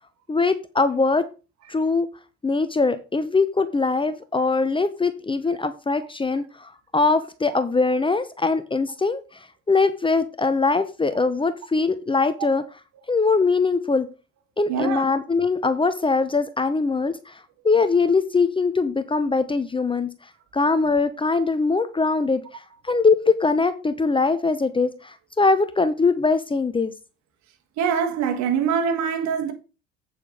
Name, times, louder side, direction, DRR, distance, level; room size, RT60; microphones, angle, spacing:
voice 1, 0.3-1.3 1.7-2.1 2.4-9.2 9.7-12.6 13.1-14.1 14.6-17.4 17.6-20.1 20.5-26.9, left 4 dB, 15° left, 0.9 m, -22 dB
voice 2, 14.7-15.0 27.8-29.5, right 7 dB, 55° right, 1.8 m, -24 dB
8.4 x 7.5 x 3.9 m
hypercardioid pair, 65°, 33 cm